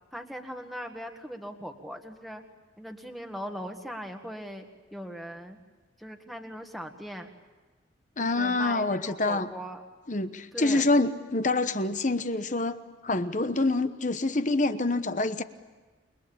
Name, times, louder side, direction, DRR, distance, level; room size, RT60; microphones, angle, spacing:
voice 1, 0.1-2.4 2.8-4.6 4.9-5.6 6.0-7.3 8.2-9.8 10.5-10.9, equal, ahead, 4 dB, 1.6 m, -39 dB
voice 2, 8.2-9.5 10.1-12.8 13.0-15.4, left 2 dB, 40° left, 11 dB, 1.0 m, -26 dB
29.0 x 21.5 x 8.6 m, 1.3 s
head